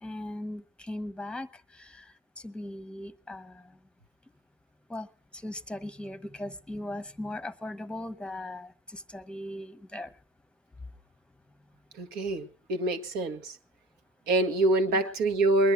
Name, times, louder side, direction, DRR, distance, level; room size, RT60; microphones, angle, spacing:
voice 1, 0.0-3.7 4.9-5.1 5.3-10.1 14.9-15.1, left 1 dB, 5° left, 1.1 m, -39 dB
voice 2, 12.0-13.6 14.3-15.7, right 2 dB, 65° right, 1.6 m, -26 dB
20.5 x 10.5 x 5.8 m
hypercardioid pair, 70°, 18 cm